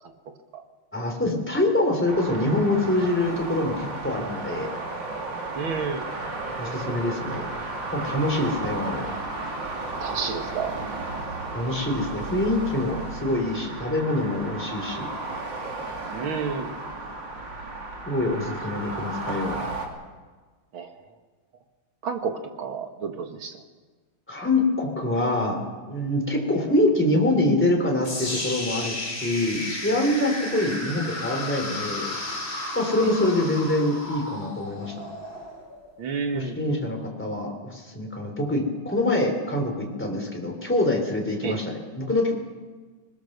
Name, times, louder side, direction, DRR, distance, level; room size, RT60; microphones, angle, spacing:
voice 1, 0.9-4.7 6.6-7.5 7.9-9.1 11.5-15.1 18.1-19.7 24.3-25.6 25.8-32.1 32.7-34.9 36.3-42.3, left 1 dB, 5° left, 1 dB, 3.4 m, -25 dB
sound 1, 2.1-19.9, right 2 dB, 60° right, 3.2 m, -34 dB
voice 2, 5.5-6.1 10.0-10.7 16.1-16.8 20.7-20.9 22.0-23.6 33.0-33.1 36.0-36.8 41.4-41.6, right 5 dB, 80° right, 5 dB, 2.5 m, -30 dB
sound 2, 28.0-36.1, left 2 dB, 30° left, 4.2 m, -33 dB
21.0 x 20.5 x 6.7 m, 1.4 s
omnidirectional pair, 2.2 m